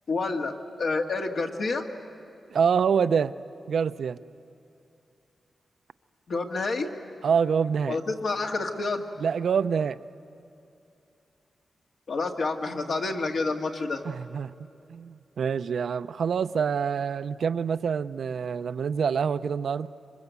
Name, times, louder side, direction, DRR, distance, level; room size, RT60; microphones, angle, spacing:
voice 1, 0.1-0.5 0.8-1.9 6.3-6.9 7.9-9.0 12.1-14.0, left 3 dB, 65° left, 3 dB, 2.0 m, -28 dB
voice 2, 2.5-3.3 3.7-4.2 7.2-8.0 9.2-10.0 14.0-14.5 14.9-19.9, right 6 dB, 75° right, 12 dB, 0.5 m, -26 dB
26.5 x 24.0 x 8.2 m, 2.7 s
wide cardioid pair, 100°, 0 cm